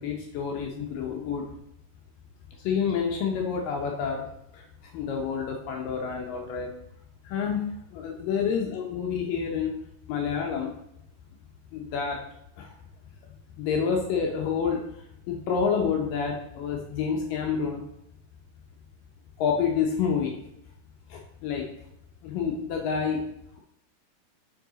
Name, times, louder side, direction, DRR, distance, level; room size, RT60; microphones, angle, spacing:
voice 1, 0.0-1.4 2.6-4.3 4.5-4.6 4.9-6.7 7.2-9.7 10.1-10.7 11.7-12.2 12.6-12.7 13.6-14.8 15.3-17.8 19.4-20.4 21.1-21.7 22.2-23.2, left 6 dB, 75° left, 1 dB, 2.1 m, -28 dB
5.6 x 5.0 x 3.9 m, 0.78 s
omnidirectional pair, 4.4 m